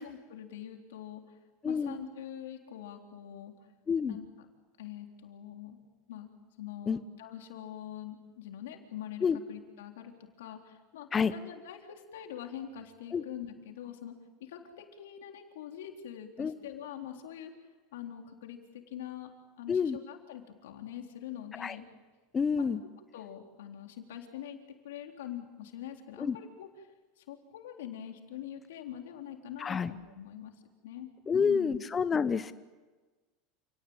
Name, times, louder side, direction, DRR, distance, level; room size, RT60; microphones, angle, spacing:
voice 1, 0.0-1.4 1.6-3.5 4.0-4.3 4.8-5.8 6.1-6.3 6.6-10.1 10.4-14.1 14.4-17.5 17.9-19.3 19.6-21.9 22.6-22.7 23.1-24.6 24.8-26.9 27.2-30.5 30.8-31.8, left 10 dB, 85° left, 3 dB, 3.7 m, -44 dB
voice 2, 1.6-2.0 3.9-4.2 6.9-7.0 9.2-9.4 11.1-11.3 13.1-13.2 16.4-16.5 19.7-20.0 21.6-21.7 22.3-22.8 26.2-26.4 29.6-29.9 31.3-32.5, left 6 dB, 25° left, 13 dB, 0.9 m, -28 dB
29.0 x 18.5 x 8.9 m, 1.3 s
supercardioid pair, 115°, 0 cm